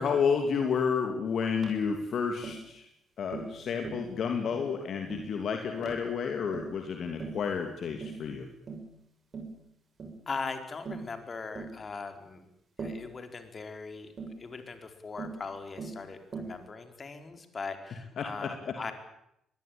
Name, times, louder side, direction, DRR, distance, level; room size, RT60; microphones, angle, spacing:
voice 1, 0.0-2.9 3.2-8.5 18.2-18.3, left 6 dB, 55° left, 4 dB, 3.0 m, -30 dB
Tap, 1.6-1.8 2.4-2.6 3.3-3.6 3.8-4.1 4.5-4.7 5.1-5.3 5.9-6.1 6.5-6.8 7.2-7.4 8.0-8.3 8.7-8.9 9.3-9.6 10.0-10.2 10.9-11.1 11.6-11.8 12.8-13.1 14.2-14.4 15.2-15.4 15.8-16.0 16.3-16.6, right 4 dB, 45° right, 6.9 m, -40 dB
voice 2, 10.3-12.5 12.8-14.1 14.4-18.9, left 4 dB, 40° left, 7 dB, 4.5 m, -40 dB
23.0 x 20.5 x 8.9 m, 0.78 s
hypercardioid pair, 45°, 0 cm